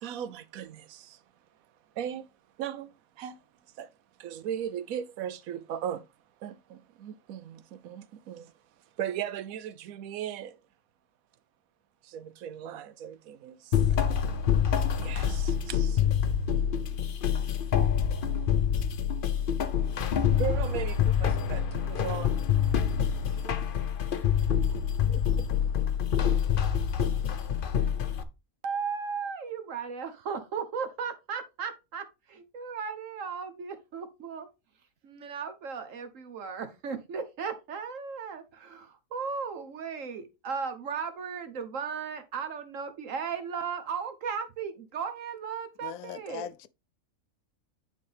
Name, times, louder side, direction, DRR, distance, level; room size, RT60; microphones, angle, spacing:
voice 1, 0.0-1.2 2.0-2.3 2.6-3.4 3.8-3.9 4.2-6.0 6.4-8.5 9.0-10.6 12.0-14.0 15.0-16.1 20.4-22.4 23.3-23.4 25.1-25.5, right 9 dB, 90° right, 1.1 m, -37 dB
sound 1, 13.7-28.2, left 8 dB, 50° left, 0.7 m, -26 dB
voice 2, 28.6-34.5 35.0-46.5, right 6 dB, 70° right, 1.3 m, -36 dB
voice 3, 45.8-46.7, left 10 dB, 80° left, 1.0 m, -40 dB
9.6 x 4.1 x 3.3 m
omnidirectional pair, 1.4 m